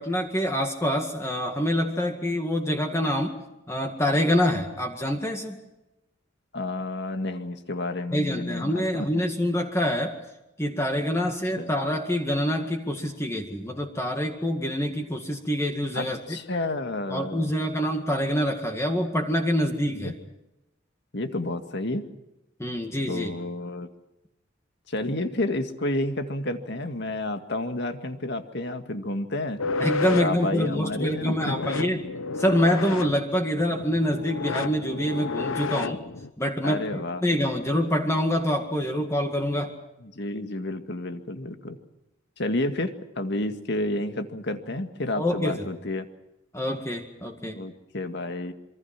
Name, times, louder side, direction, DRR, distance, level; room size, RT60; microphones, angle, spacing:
voice 1, 0.0-3.4 3.7-5.6 8.1-10.2 10.6-16.4 17.1-20.2 22.6-23.3 29.8-32.0 32.4-36.0 36.4-39.7 45.2-45.7 46.5-47.6, equal, 15° left, 3 dB, 2.0 m, -26 dB
voice 2, 6.5-9.1 11.2-11.7 15.9-17.5 19.9-20.1 21.1-22.1 23.1-23.9 24.9-29.6 30.1-31.5 36.6-37.2 40.0-41.8 42.4-46.1 47.5-48.5, left 1 dB, 60° left, 7 dB, 2.0 m, -30 dB
sound 1, 29.6-36.3, left 3 dB, 80° left, 1.0 m, -31 dB
27.0 x 24.0 x 6.0 m, 0.94 s
head